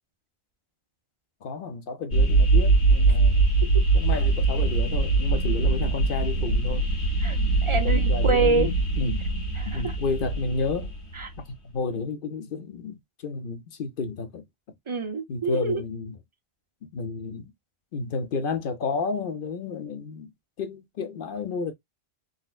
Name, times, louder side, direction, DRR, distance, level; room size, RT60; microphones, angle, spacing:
voice 1, 1.4-3.5 3.9-6.9 7.8-9.3 9.6-10.9 11.7-14.5 15.3-16.1 16.9-17.5 17.9-20.3 20.6-21.7, left 4 dB, 60° left, 0.8 m, -31 dB
sound 1, 2.1-11.4, right 3 dB, 85° left, 1.3 m, -22 dB
voice 2, 7.2-8.7 9.6-10.0 11.1-11.3 14.9-15.8, right 4 dB, 40° right, 0.4 m, -26 dB
4.0 x 2.1 x 2.3 m
omnidirectional pair, 1.1 m